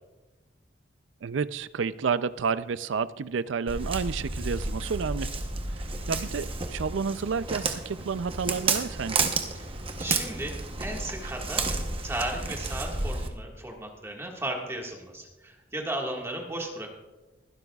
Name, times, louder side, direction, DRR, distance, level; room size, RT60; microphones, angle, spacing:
voice 1, 1.2-5.3 5.7-9.3, right 5 dB, 90° right, 15 dB, 0.4 m, -30 dB
Walk footsteps, 3.7-13.3, right 3 dB, 30° right, 0.9 m, -31 dB
voice 2, 10.0-10.5 10.8-11.6 12.0-16.9, right 1 dB, 15° right, 0 dB, 1.7 m, -35 dB
21.5 x 12.0 x 2.4 m, 1.1 s
head